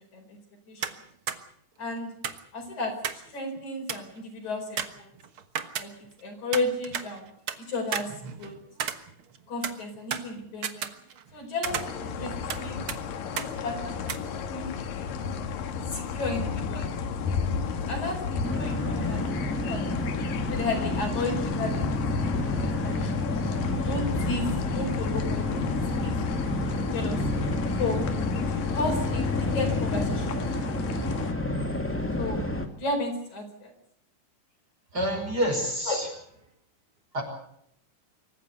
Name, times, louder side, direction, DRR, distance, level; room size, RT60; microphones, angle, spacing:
sound 1, 0.8-1.0 1.3-1.4 2.2-3.3 3.6-3.7 3.9-4.2 4.8-6.2 6.5-7.6 7.9-9.4 9.6-11.3 11.6-12.6 12.9-13.0 13.4-13.5 14.1-14.2, right 8 dB, 55° right, 1.6 m, -33 dB
voice 1, 1.8-2.1 2.5-2.9 3.3-5.1 5.8-5.9 6.2-7.3 7.7-8.1 8.4-8.6 9.5-10.9 11.3-12.8 13.2-14.2 14.5-14.8 15.3-15.5 15.9-16.9 17.7-19.8 20.5-23.2 23.8-25.6 26.0-26.2 26.7-27.2 27.8-28.0 28.5-30.6 30.9-31.4 32.2-32.4 32.8-33.7 35.9-36.0, left 2 dB, 60° left, 3 dB, 6.0 m, -33 dB
sound 2, 11.6-31.3, left 6 dB, 85° left, 3.3 m, -33 dB
sound 3, 18.4-32.7, left 1 dB, 5° left, 1.3 m, -29 dB
voice 2, 34.9-36.1 37.1-37.2, equal, 25° right, 2 dB, 5.8 m, -27 dB
25.5 x 15.0 x 8.1 m, 0.73 s
omnidirectional pair, 3.9 m